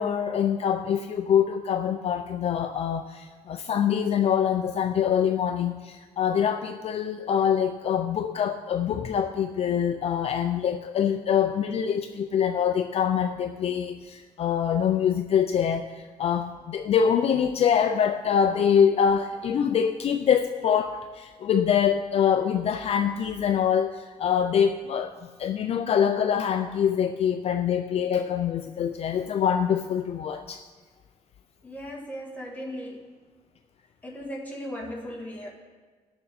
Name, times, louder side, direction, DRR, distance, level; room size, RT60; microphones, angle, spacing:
voice 1, 0.0-25.1 25.4-30.6, left 8 dB, 50° left, 7 dB, 0.4 m, -24 dB
voice 2, 31.6-33.0 34.0-35.5, equal, 10° left, -3 dB, 1.8 m, -37 dB
18.0 x 6.9 x 4.2 m, 1.5 s
wide cardioid pair, 175°, 13 cm